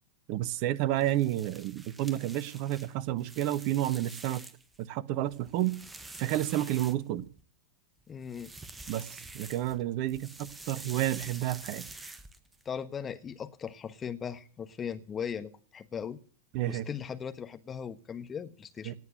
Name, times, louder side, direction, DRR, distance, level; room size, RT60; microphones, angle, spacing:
voice 1, 0.3-4.4 4.8-5.8 6.2-7.3 8.9-11.8 16.5-16.9 18.8-18.9, right 14 dB, 45° right, 0.9 m, -30 dB
sound 1, 0.9-4.8 5.2-7.4 8.2-9.8 10.1-12.6, right 2 dB, 10° right, 1.3 m, -47 dB
voice 2, 8.1-8.5 12.6-16.2 16.7-18.9, left 7 dB, 20° left, 1.3 m, -38 dB
18.0 x 8.1 x 7.9 m
figure-of-eight pair, 90°, 0 cm